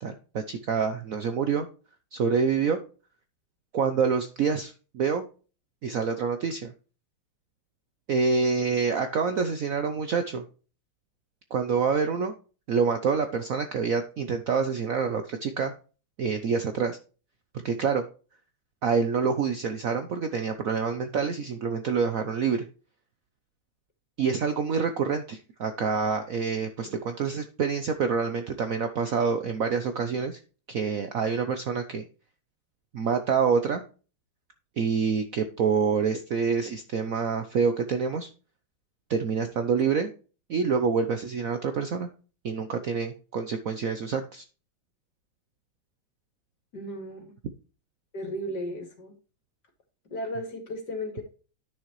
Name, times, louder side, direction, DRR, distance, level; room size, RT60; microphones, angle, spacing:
voice 1, 0.0-1.7 2.1-2.8 3.7-5.2 5.8-6.7 8.1-10.4 11.5-12.3 12.7-15.7 16.2-17.0 17.6-18.0 18.8-22.6 24.2-30.4 30.7-32.0 32.9-33.8 34.8-38.3 39.1-40.1 40.5-42.1 42.4-44.4, right 5 dB, 90° right, 8 dB, 0.7 m, -27 dB
voice 2, 46.7-47.3 48.1-49.1 50.1-51.2, equal, 50° left, 4 dB, 2.7 m, -35 dB
10.5 x 6.4 x 3.1 m, 0.36 s
omnidirectional pair, 2.4 m